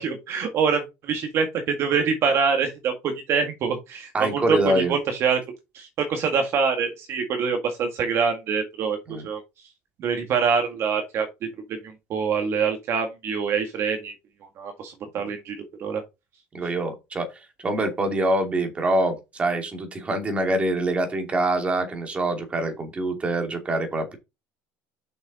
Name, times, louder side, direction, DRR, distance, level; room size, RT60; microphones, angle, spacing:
voice 1, 0.0-5.4 5.7-9.4 10.0-11.3 11.7-11.8 12.1-14.1 14.6-16.0, right 6 dB, 45° right, 1.8 m, -25 dB
voice 2, 4.1-4.9 9.1-9.2 16.5-17.3 17.6-24.2, right 1 dB, 20° right, 2.6 m, -25 dB
6.9 x 6.3 x 4.1 m
cardioid pair, 155°, 6 cm